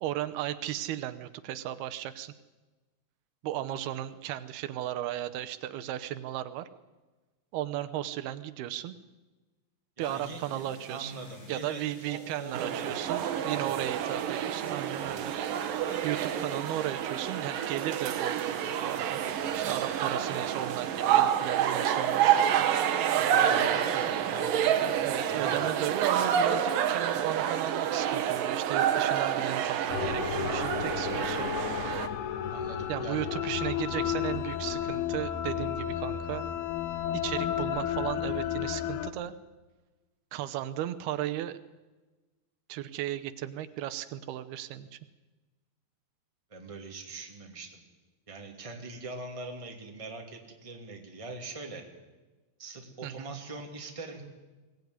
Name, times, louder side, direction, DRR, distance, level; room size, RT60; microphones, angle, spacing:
voice 1, 0.0-2.3 3.4-6.7 7.5-8.9 10.0-11.2 11.5-15.3 16.0-19.2 19.5-22.7 24.8-31.5 32.9-36.5 37.1-39.3 40.3-41.6 42.7-45.0 53.0-53.3, right 13 dB, 85° right, 10 dB, 2.9 m, -35 dB
sound 1, 10.0-21.1, equal, 15° left, 8.1 m, -53 dB
voice 2, 10.0-13.8 23.2-25.0 25.2-25.7 32.5-33.3 46.5-47.8 48.3-51.8 52.6-54.2, right 3 dB, 10° right, 2 dB, 2.1 m, -42 dB
sound 2, 12.5-32.1, right 9 dB, 70° right, 2.7 m, -28 dB
sound 3, 29.9-39.1, left 10 dB, 85° left, 3.2 m, -32 dB
22.5 x 18.0 x 9.6 m, 1.2 s
omnidirectional pair, 4.4 m